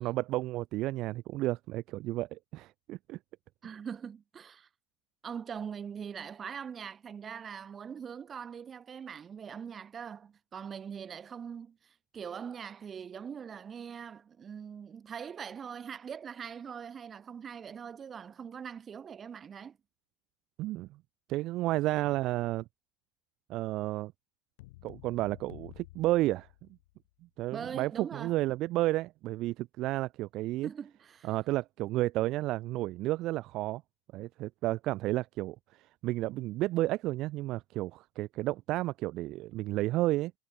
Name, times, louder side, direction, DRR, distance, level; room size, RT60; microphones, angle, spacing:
voice 1, 0.0-3.2 20.6-20.9 21.3-22.6 23.5-24.1 24.8-26.5 27.4-30.7 31.2-33.8 34.1-40.3, right 17 dB, 50° right, 0.4 m, -32 dB
voice 2, 3.6-4.7 5.2-19.8 27.5-28.3 30.6-31.3, right 7 dB, 30° right, 1.0 m, -42 dB
sound 1, 24.6-27.1, left 20 dB, 65° left, 2.1 m, -52 dB
figure-of-eight pair, 70°, 0 cm